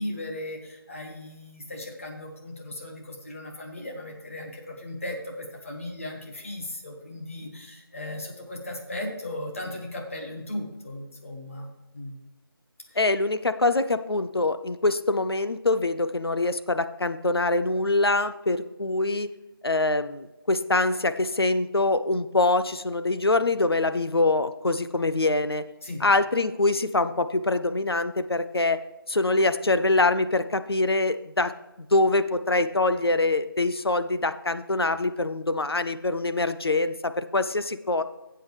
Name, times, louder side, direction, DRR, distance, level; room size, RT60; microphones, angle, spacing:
voice 1, 0.0-11.7 11.9-12.1 12.9-13.0 25.8-26.0, left 1 dB, 35° left, 1 dB, 1.6 m, -37 dB
voice 2, 13.0-19.3 19.6-25.7 26.0-28.8 29.1-31.5 31.8-38.0, left 2 dB, 80° left, 11 dB, 0.7 m, -24 dB
13.0 x 7.9 x 3.3 m, 1.0 s
figure-of-eight pair, 165°, 13 cm